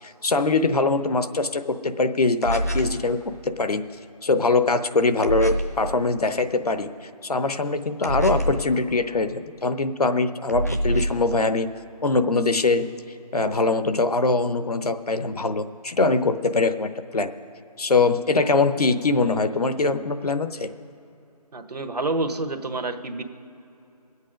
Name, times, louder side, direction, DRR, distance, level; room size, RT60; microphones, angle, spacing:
voice 1, 0.0-3.8 4.2-6.9 7.2-11.7 12.0-12.9 13.3-17.3 17.8-20.7, left 3 dB, 65° left, 10 dB, 0.8 m, -22 dB
sound 1, 2.4-3.0 5.2-5.8 8.0-8.7 10.5-11.2, equal, 25° left, 0.5 m, -25 dB
voice 2, 21.5-23.2, right 2 dB, 75° right, 7 dB, 1.3 m, -28 dB
18.5 x 8.4 x 5.1 m, 2.9 s
figure-of-eight pair, 175°, 21 cm